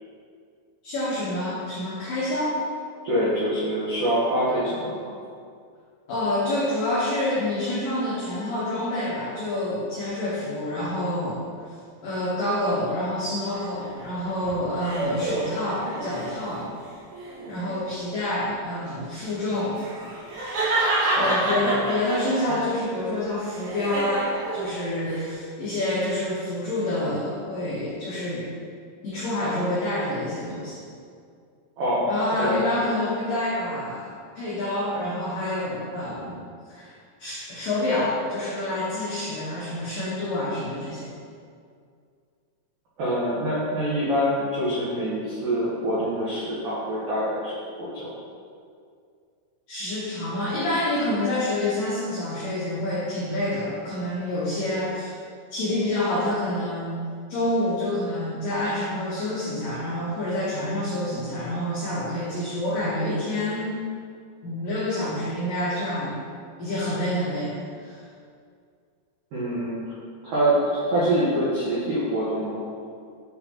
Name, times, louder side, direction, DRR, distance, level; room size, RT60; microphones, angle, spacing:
voice 1, 0.8-2.6 6.1-11.7 12.0-16.7 17.5-19.8 21.1-28.5 29.0-30.8 32.1-36.4 36.7-36.9 37.2-41.1 49.7-55.2 55.5-57.0 57.3-63.8 64.4-66.2 66.6-68.0, left 1 dB, 80° left, -9 dB, 1.9 m, -27 dB
voice 2, 3.0-5.1 21.2-21.7 31.8-32.7 43.0-48.1 69.3-69.8 70.2-72.6, equal, 85° right, -10 dB, 1.9 m, -25 dB
sound 1, 13.5-16.6 17.1-17.8 19.5-22.6 23.0-25.3, right 2 dB, 65° right, 2.9 m, -28 dB
9.4 x 4.5 x 2.9 m, 2.3 s
omnidirectional pair, 5.7 m